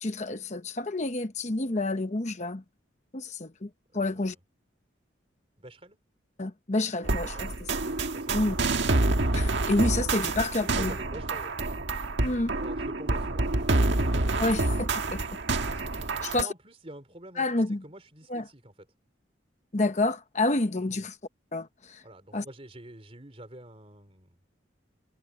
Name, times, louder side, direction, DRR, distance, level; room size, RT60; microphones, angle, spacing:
voice 1, 0.0-2.6 3.1-4.4 6.4-7.7 8.3-8.6 9.3-10.9 12.2-12.5 14.4-15.2 16.2-16.5 17.4-17.8 18.3-18.4 19.7-21.2 21.5-22.0 22.3-22.4, left 2 dB, 40° left, 0.9 m, -29 dB
voice 2, 3.9-4.3 5.6-6.0 7.3-7.4 8.1-8.4 10.6-11.6 12.6-14.5 16.2-18.7 20.9-21.1 22.0-24.4, right 1 dB, 30° right, 3.8 m, -47 dB
sound 1, 7.0-16.4, right 2 dB, 75° right, 1.6 m, -27 dB
head